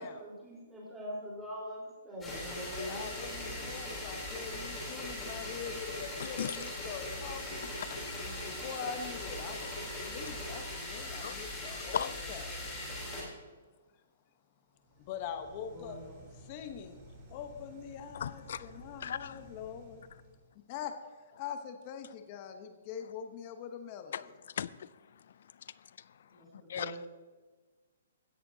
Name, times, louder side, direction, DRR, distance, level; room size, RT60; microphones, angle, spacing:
voice 1, 0.0-3.1 15.7-16.1 26.3-27.1, equal, 10° right, -5 dB, 4.0 m, -43 dB
sound 1, 2.2-13.2, left 1 dB, 10° left, 3.4 m, -40 dB
voice 2, 2.8-7.7 8.2-12.6 15.0-16.0 16.4-17.0 17.3-20.1 20.7-24.3, left 7 dB, 30° left, 6 dB, 0.9 m, -43 dB
sound 2, 14.8-20.5, equal, 25° right, 4.3 m, -54 dB
voice 3, 18.1-18.7 19.0-19.4 24.1-25.3 25.6-26.2 26.7-26.9, left 8 dB, 60° left, 19 dB, 0.4 m, -38 dB
16.0 x 11.0 x 2.8 m, 1.3 s
hypercardioid pair, 165°, 0 cm